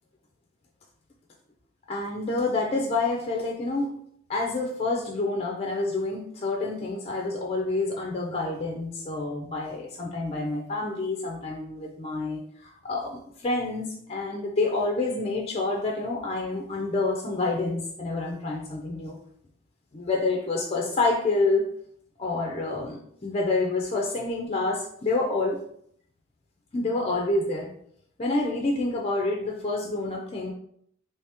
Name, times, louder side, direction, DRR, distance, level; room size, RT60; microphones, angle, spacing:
voice 1, 1.9-4.0 4.3-19.2 19.9-21.6 22.2-25.6 26.7-27.7 28.2-30.5, left 2 dB, 30° left, 0 dB, 0.5 m, -28 dB
3.2 x 2.8 x 3.4 m, 0.67 s
head